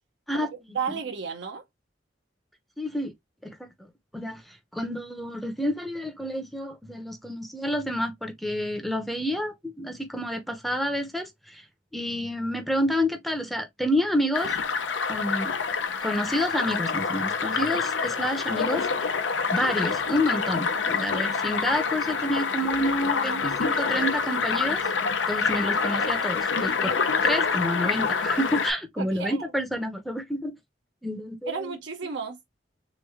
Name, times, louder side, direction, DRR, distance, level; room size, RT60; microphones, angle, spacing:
voice 1, 0.3-1.6 29.0-29.5 31.5-32.4, right 5 dB, 75° right, 0.7 m, -33 dB
voice 2, 2.8-3.1 3.4-3.9 4.1-11.6 11.9-14.6 15.1-15.5 16.0-19.1 19.5-24.9 25.3-27.0 27.2-30.5 31.0-31.7, equal, ahead, 0.6 m, -29 dB
sound 1, 14.3-28.7, left 5 dB, 90° left, 0.7 m, -26 dB
3.5 x 3.1 x 3.5 m
head